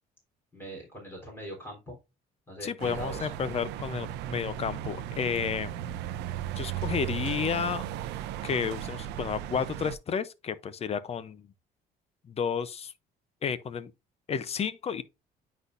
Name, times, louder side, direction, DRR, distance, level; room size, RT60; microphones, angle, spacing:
voice 1, 0.5-2.0 2.5-3.3, right 1 dB, 15° left, 3.6 m, -42 dB
voice 2, 2.6-5.7 6.6-7.8 8.4-11.4 12.3-12.9 13.4-13.9 14.3-15.0, left 7 dB, 35° left, 0.7 m, -31 dB
sound 1, 2.8-10.0, right 12 dB, 85° right, 0.6 m, -36 dB
9.4 x 4.2 x 2.6 m
cardioid pair, 110°, 17 cm